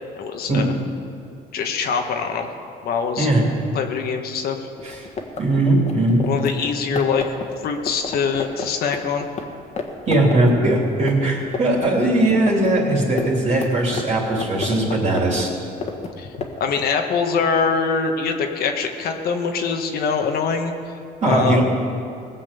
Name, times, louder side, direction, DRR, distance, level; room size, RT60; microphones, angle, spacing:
voice 1, 0.1-0.7 1.5-2.5 2.8-3.3 3.7-4.7 6.3-7.2 7.6-9.3 16.2-16.3 16.6-20.7 21.2-21.6, left 5 dB, 65° left, 4 dB, 1.4 m, -23 dB
sound 1, 4.8-9.4 9.8-9.9 10.1-11.9 12.1-16.9, left 5 dB, 40° left, 1.7 m, -30 dB
voice 2, 5.4-6.2 10.1-15.5 21.2-21.6, right 1 dB, 40° right, -2 dB, 3.0 m, -19 dB
19.0 x 7.5 x 7.0 m, 2.5 s
cardioid pair, 110°, 17 cm